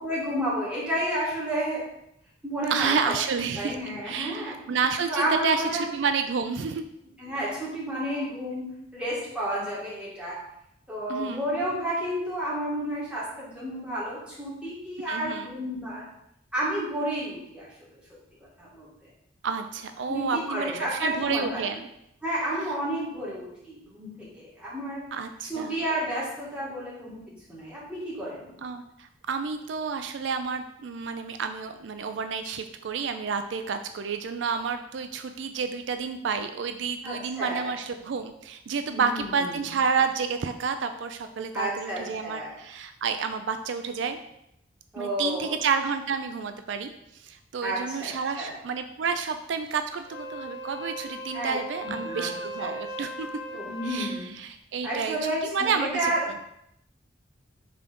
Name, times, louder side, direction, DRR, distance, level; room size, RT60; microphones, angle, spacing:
voice 1, 0.0-1.8 2.4-3.1 3.5-4.6 5.1-5.8 7.2-8.6 8.9-10.4 10.9-16.1 16.5-17.7 18.6-19.1 20.1-21.6 22.2-25.0 25.5-28.5 37.0-37.7 38.9-39.7 41.5-42.5 44.9-45.5 47.6-48.1 48.4-48.5 51.3-52.3 52.6-52.7 53.5-54.3 54.8-56.3, right 1 dB, 5° right, -8 dB, 2.2 m, -31 dB
voice 2, 2.7-3.8 4.1-6.8 11.1-11.6 15.1-15.5 19.4-21.8 25.1-25.8 28.6-44.2 45.0-53.3 53.8-55.2 55.4-56.1, right 5 dB, 75° right, 8 dB, 0.4 m, -30 dB
Wind instrument woodwind instrument, 50.0-54.3, equal, 65° left, 0.9 m, -38 dB
5.6 x 3.8 x 5.2 m, 0.81 s
head